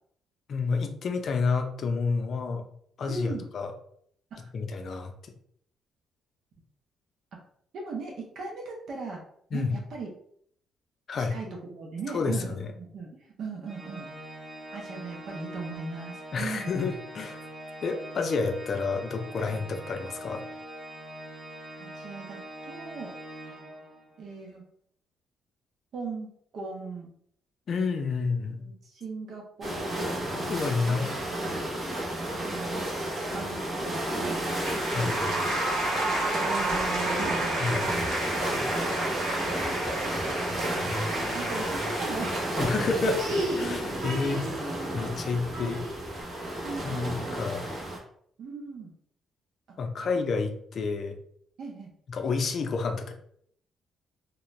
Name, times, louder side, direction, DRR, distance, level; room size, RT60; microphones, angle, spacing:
voice 1, 0.5-2.6 3.0-3.7 4.5-5.1 9.5-9.8 11.1-11.4 12.1-12.7 16.3-17.5 17.8-20.4 27.7-28.7 30.5-31.1 34.8-35.4 37.6-38.0 42.6-44.5 44.9-45.8 46.8-47.6 49.8-51.2 52.1-53.1, left 4 dB, 55° left, 5 dB, 0.4 m, -29 dB
voice 2, 3.1-3.5 4.3-4.5 7.7-9.2 9.5-10.1 11.2-14.1 14.7-16.8 21.8-23.1 24.2-24.6 25.9-27.1 28.6-30.3 30.9-31.4 32.3-34.6 36.3-37.6 41.3-42.7 45.2-45.4 46.6-47.5 48.4-48.9 50.0-50.2 51.6-51.9, right 4 dB, 65° right, 0 dB, 0.6 m, -38 dB
Organ, 13.7-24.3, right 1 dB, 15° right, 0.6 m, -43 dB
sound 1, 29.6-48.0, right 1 dB, 40° right, 0.9 m, -32 dB
sound 2, 34.3-46.2, right 1 dB, 90° right, 0.9 m, -31 dB
2.4 x 2.1 x 3.1 m, 0.66 s
cardioid pair, 90°, 0 cm